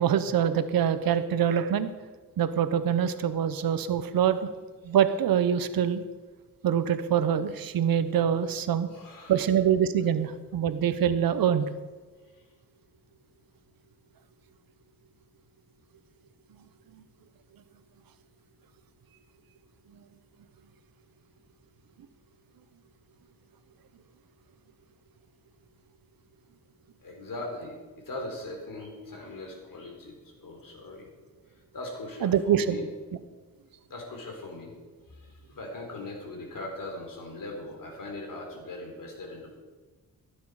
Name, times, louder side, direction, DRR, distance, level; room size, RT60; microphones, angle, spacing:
voice 1, 0.0-1.9 2.4-4.5 4.8-6.0 6.6-8.9 9.3-11.7 32.2-32.8, right 9 dB, 90° right, 12 dB, 0.9 m, -25 dB
voice 2, 8.9-9.4 12.3-12.4 27.0-31.1 31.7-32.9 33.9-34.7 35.1-39.6, left 2 dB, 70° left, 1 dB, 3.7 m, -40 dB
16.5 x 9.4 x 4.9 m, 1.3 s
cardioid pair, 80°, 34 cm